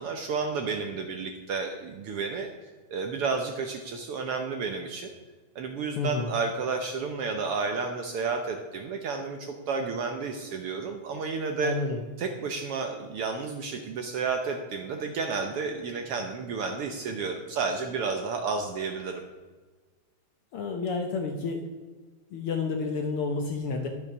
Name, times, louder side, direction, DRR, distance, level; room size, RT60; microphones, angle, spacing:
voice 1, 0.0-5.1 5.5-11.8 12.2-19.2, right 4 dB, 70° right, 4 dB, 1.5 m, -31 dB
voice 2, 6.0-6.3 11.6-12.0 20.5-21.6 22.3-23.9, left 4 dB, 65° left, 4 dB, 1.4 m, -30 dB
11.0 x 6.8 x 6.0 m, 1.3 s
omnidirectional pair, 3.3 m